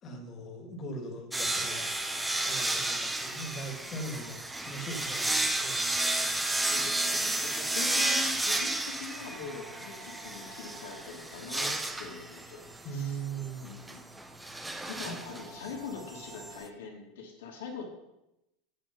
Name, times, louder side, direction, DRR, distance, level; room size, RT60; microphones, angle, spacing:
voice 1, 0.0-1.9 2.4-5.8 10.4-10.5 12.8-13.7 15.1-15.2, right 3 dB, 30° left, 2 dB, 2.2 m, -40 dB
sound 1, 1.3-16.6, right 2 dB, 5° right, 0.7 m, -32 dB
sound 2, 6.2-16.6, right 2 dB, 70° right, 3.9 m, -55 dB
voice 2, 6.6-13.2 13.6-14.0 14.9-17.9, left 5 dB, 90° left, 0 dB, 2.8 m, -43 dB
8.7 x 7.0 x 5.3 m, 0.88 s
supercardioid pair, 140°, 0 cm